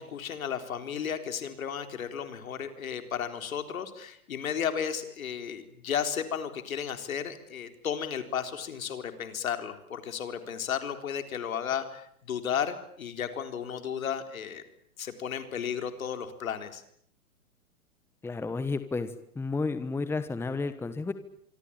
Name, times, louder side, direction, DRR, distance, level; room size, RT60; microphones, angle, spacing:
voice 1, 0.0-14.6 15.0-16.8, left 8 dB, 70° left, 9 dB, 4.0 m, -34 dB
voice 2, 18.2-19.1 19.3-21.1, left 3 dB, 5° left, 12 dB, 1.3 m, -31 dB
25.5 x 24.5 x 8.9 m, 0.69 s
hypercardioid pair, 120°, 43 cm